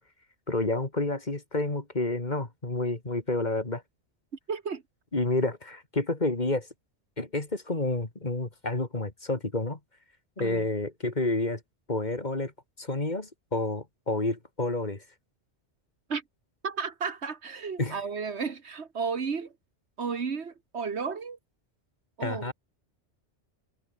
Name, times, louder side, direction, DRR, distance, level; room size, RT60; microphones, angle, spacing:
voice 1, 0.5-3.8 5.1-6.7 7.2-9.8 10.4-11.6 11.9-12.5 12.8-15.0 17.8-18.0 22.2-22.5, left 2 dB, 40° left, 2.9 m, -29 dB
voice 2, 4.5-4.8 10.4-10.7 16.1-16.2 16.6-19.5 20.0-21.4 22.2-22.5, right 5 dB, 70° right, 1.7 m, -33 dB
omnidirectional pair, 1.2 m